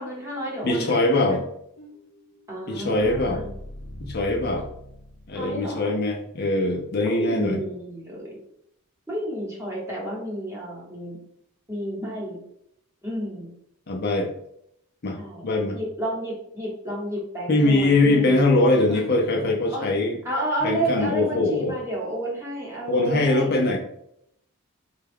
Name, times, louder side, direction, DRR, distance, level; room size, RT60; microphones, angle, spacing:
voice 1, 0.0-1.4 2.5-3.5 5.3-6.0 7.0-8.4 9.1-11.2 11.7-12.4 13.0-13.5 15.2-15.4 15.7-19.0 19.7-19.9 20.2-23.5, right 1 dB, 10° right, -4 dB, 1.0 m, -31 dB
voice 2, 0.6-1.4 2.7-3.4 4.0-4.7 5.3-7.6 13.9-14.3 15.0-15.8 17.5-20.2 20.6-21.7 22.9-23.8, left 2 dB, 45° left, 1 dB, 0.5 m, -22 dB
sound 1, 1.8-5.8, equal, 85° left, 0.7 m, -41 dB
3.6 x 2.3 x 3.4 m, 0.74 s
head